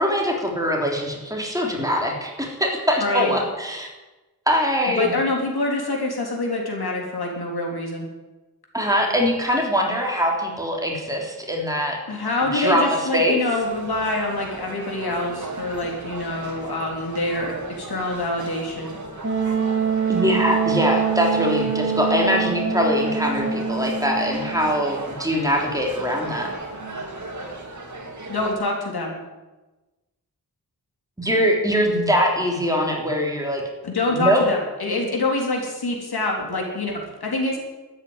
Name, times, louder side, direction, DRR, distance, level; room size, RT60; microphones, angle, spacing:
voice 1, 0.0-3.9 4.5-5.1 8.7-12.0 12.5-13.4 20.1-26.5 31.2-33.6 34.1-34.4, equal, 10° right, -1 dB, 3.5 m, -22 dB
voice 2, 3.0-3.4 5.0-8.1 12.1-18.9 28.3-29.1 33.8-37.6, left 2 dB, 80° left, 0 dB, 3.8 m, -26 dB
sound 1, 13.6-28.5, right 2 dB, 50° right, 2.8 m, -36 dB
Wind instrument woodwind instrument, 19.2-24.8, right 6 dB, 30° right, 2.7 m, -24 dB
13.0 x 9.2 x 9.8 m, 1.1 s
wide cardioid pair, 115°, 37 cm